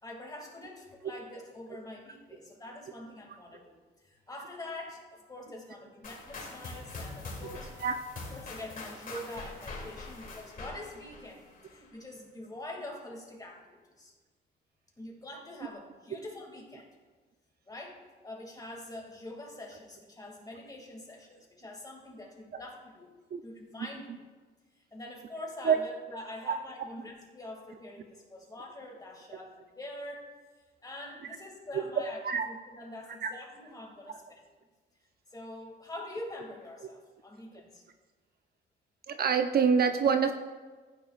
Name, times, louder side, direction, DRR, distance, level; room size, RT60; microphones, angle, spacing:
voice 1, 0.0-7.7 8.2-14.1 15.0-16.9 17.7-23.1 23.4-24.1 24.9-30.3 30.8-32.2 32.5-34.5 35.3-37.8, left 1 dB, 20° left, -1 dB, 2.4 m, -45 dB
sound 1, 6.0-11.9, left 3 dB, 45° left, 2.8 m, -44 dB
voice 2, 39.1-40.3, right 6 dB, 50° right, 7 dB, 0.6 m, -25 dB
15.0 x 9.7 x 2.5 m, 1.4 s
cardioid pair, 90°, 20 cm